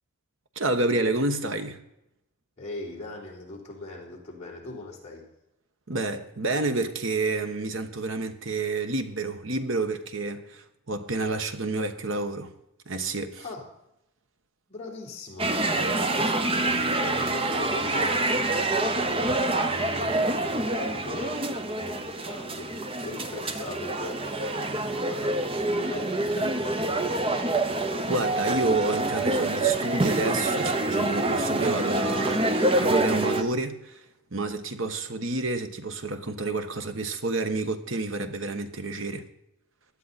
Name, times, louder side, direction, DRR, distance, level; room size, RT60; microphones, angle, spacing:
voice 1, 0.5-1.8 5.9-12.5 12.9-13.4 27.9-34.0 34.3-39.2, right 2 dB, 65° right, 1.2 m, -29 dB
voice 2, 2.6-5.2 13.4-13.7 14.7-18.6 19.5-27.3, left 2 dB, 30° left, 4.1 m, -40 dB
sound 1, 15.4-33.4, right 2 dB, 25° right, 0.8 m, -26 dB
17.0 x 11.0 x 4.2 m
head